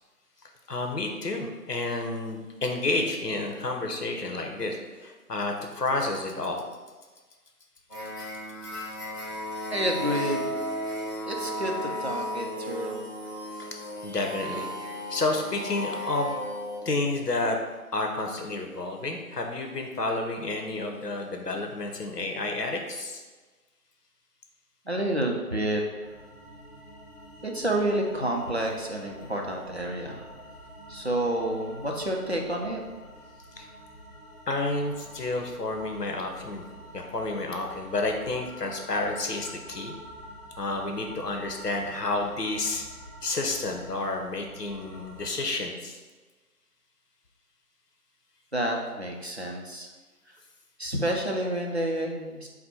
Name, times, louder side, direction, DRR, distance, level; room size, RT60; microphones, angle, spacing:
voice 1, 0.7-6.6 13.6-13.7 14.0-14.7 15.1-16.3 16.8-17.6 17.9-23.2 33.6-33.7 34.5-36.6 36.9-39.9 40.6-42.8 43.2-46.0, left 2 dB, 85° left, 3 dB, 0.8 m, -30 dB
sound 1, 7.9-16.8, equal, 15° left, 1.3 m, -35 dB
voice 2, 9.7-10.5 11.3-13.0 24.9-25.8 27.4-30.3 30.9-32.8 48.5-49.9 50.3-50.4 50.8-52.5, right 1 dB, 45° right, 0 dB, 0.5 m, -29 dB
sound 2, 26.0-45.3, equal, 35° left, 0.8 m, -47 dB
4.3 x 2.1 x 4.2 m, 1.3 s
figure-of-eight pair, 160°, 46 cm